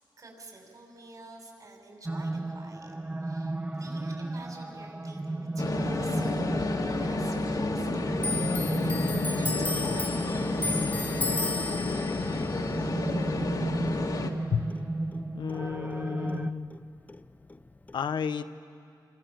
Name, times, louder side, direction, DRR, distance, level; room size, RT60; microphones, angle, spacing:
voice 1, 0.2-8.2 9.2-11.4, right 2 dB, 50° right, 1 dB, 6.6 m, -49 dB
sound 1, 2.1-16.5, right 2 dB, 20° right, 0.8 m, -34 dB
sound 2, 5.6-14.3, left 3 dB, 55° left, 2.0 m, -30 dB
Clock, 8.2-15.2 15.5-16.8 17.1-17.9, left 3 dB, 20° left, 0.6 m, -35 dB
voice 2, 15.3-16.7 17.9-18.5, left 6 dB, 75° left, 10 dB, 0.9 m, -31 dB
26.5 x 26.5 x 7.7 m, 2.4 s
cardioid pair, 90°, 8 cm